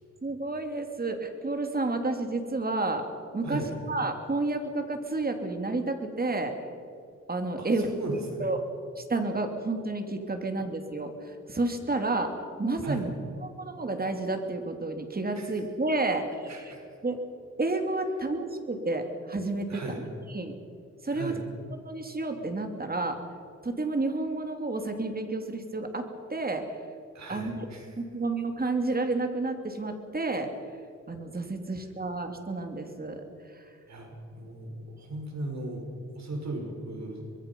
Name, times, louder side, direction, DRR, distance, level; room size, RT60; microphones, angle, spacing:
voice 1, 0.2-3.1 3.3-6.5 7.3-8.6 9.0-12.3 12.6-13.1 13.4-16.5 17.0-17.2 17.6-20.5 21.0-21.3 21.8-23.2 23.6-26.7 27.3-27.6 28.0-30.5 31.1-33.2 33.5-33.6, right 2 dB, 30° right, 5 dB, 3.0 m, -30 dB
voice 2, 7.6-8.5 12.8-13.1 15.3-15.5 16.5-17.0 19.7-20.0 21.1-21.5 27.1-27.9 33.9-35.9 36.1-37.3, right 2 dB, 65° right, 2 dB, 4.9 m, -37 dB
24.5 x 21.5 x 5.5 m, 2.5 s
cardioid pair, 90°, 29 cm